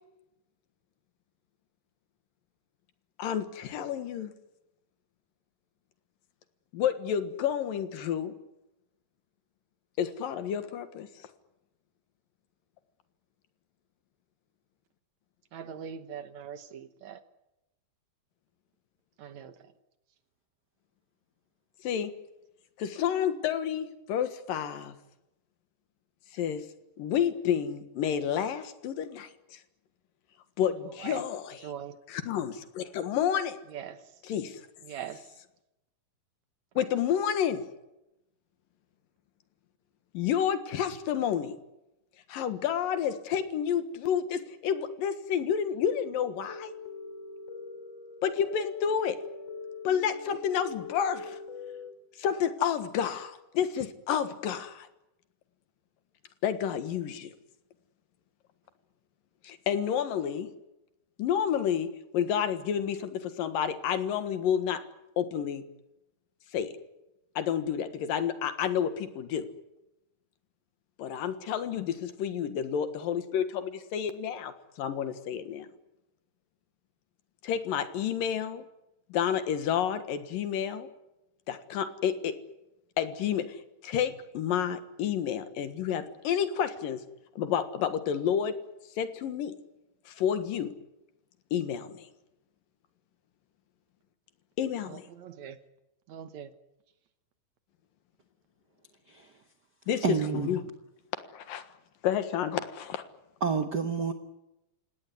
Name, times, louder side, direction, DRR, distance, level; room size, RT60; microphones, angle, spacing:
voice 1, 3.2-4.3 6.7-8.4 10.0-11.1 21.8-22.1 22.8-24.9 26.3-26.7 27.0-29.6 30.6-31.6 32.1-33.6 34.2-34.6 36.8-37.7 40.1-41.6 42.3-46.7 48.2-49.2 49.8-51.4 52.2-54.9 56.4-57.3 59.4-60.5 61.2-64.8 65.2-65.6 66.5-66.7 67.4-69.5 71.0-75.7 77.4-78.6 79.1-80.9 81.5-82.4 83.0-87.0 87.4-88.6 89.0-89.6 90.1-90.7 91.5-92.1 94.6-95.1 99.9-100.0 100.3-100.6 101.3-101.7 102.0-103.0, left 8 dB, 85° left, 10 dB, 3.2 m, -30 dB
voice 2, 15.5-17.2 19.2-19.6 31.0-31.2 31.6-32.0 33.7-34.0 34.8-35.2 36.8-36.9 94.9-95.6 96.1-96.5, right 8 dB, 65° right, 10 dB, 2.2 m, -41 dB
sound 1, 45.8-51.9, left 4 dB, 35° left, 3.4 m, -43 dB
voice 3, 100.0-100.5 103.4-104.1, right 5 dB, 85° right, 7 dB, 0.9 m, -29 dB
29.0 x 17.5 x 9.6 m, 0.94 s
omnidirectional pair, 3.9 m